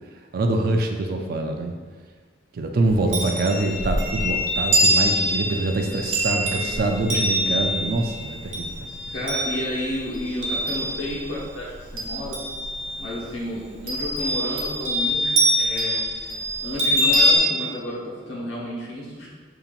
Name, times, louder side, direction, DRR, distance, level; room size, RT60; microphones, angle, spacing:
voice 1, 0.3-1.7 2.5-8.9 9.2-9.3, right 2 dB, 50° right, 3 dB, 0.4 m, -25 dB
Chime, 2.9-11.4 11.7-13.1 13.9-17.4, equal, 85° right, 0.8 m, -24 dB
voice 2, 9.1-12.4 13.0-19.3, left 1 dB, 85° left, -5 dB, 1.1 m, -32 dB
5.2 x 2.8 x 2.4 m, 1.5 s
head